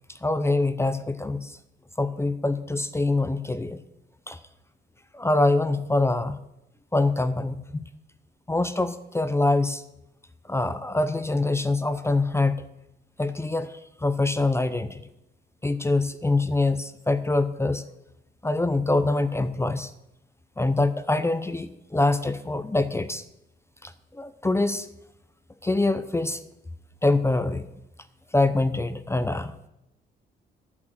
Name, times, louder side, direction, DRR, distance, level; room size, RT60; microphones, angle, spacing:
voice 1, 0.2-1.5 2.0-3.8 4.3-4.4 5.1-6.4 6.9-7.8 8.5-9.8 10.5-12.5 13.2-13.7 14.0-15.0 15.6-17.8 18.4-19.9 20.6-23.2 23.8-24.9 25.6-26.4 27.0-27.6 28.3-29.7, left 2 dB, 15° left, 12 dB, 0.6 m, -24 dB
8.7 x 6.5 x 7.3 m, 0.87 s
cardioid pair, 90°, 20 cm